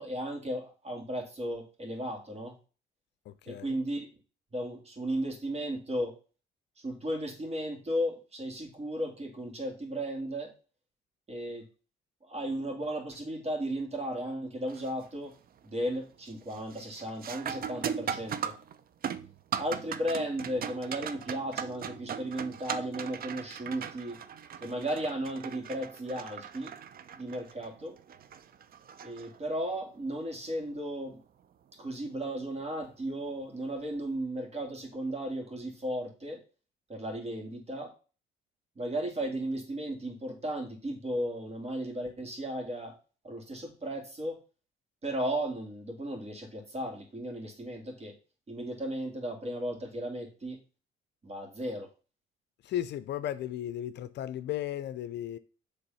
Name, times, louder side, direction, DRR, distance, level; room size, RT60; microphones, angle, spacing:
voice 1, 0.0-2.5 3.5-4.1 4.5-6.1 6.8-10.5 11.3-11.6 12.2-15.3 15.6-18.5 19.6-24.2 24.6-26.8 27.2-28.0 29.0-31.2 31.8-36.4 36.9-37.9 38.8-42.9 43.2-44.4 45.0-48.1 48.5-50.6 51.2-51.9, right 1 dB, 30° right, 2.4 m, -35 dB
voice 2, 3.3-3.7 52.6-55.4, left 11 dB, 60° left, 0.5 m, -35 dB
sound 1, 14.7-15.1 15.5-15.9 16.3-29.8 32.3-32.4 33.2-33.4, right 8 dB, 45° right, 0.6 m, -39 dB
7.1 x 3.5 x 5.5 m
cardioid pair, 95°, 21 cm